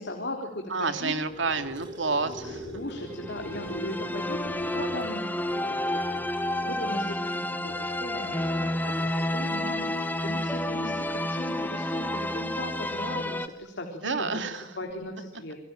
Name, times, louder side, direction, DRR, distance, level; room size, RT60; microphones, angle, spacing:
voice 1, 0.0-1.1 2.4-15.6, left 1 dB, 60° left, 2 dB, 3.8 m, -38 dB
voice 2, 0.7-2.8 8.2-8.4 14.0-14.6, right 4 dB, 65° right, 8 dB, 2.4 m, -29 dB
sound 1, 1.1-6.9 7.3-7.8 14.9-15.0, equal, 85° left, 6.5 m, -44 dB
sound 2, 1.4-4.1 4.5-4.6 5.0-5.2 6.3-6.4, equal, 25° right, 5.3 m, -43 dB
sound 3, 3.0-13.5, left 1 dB, 10° left, 1.6 m, -30 dB
29.0 x 22.5 x 9.1 m, 0.98 s
head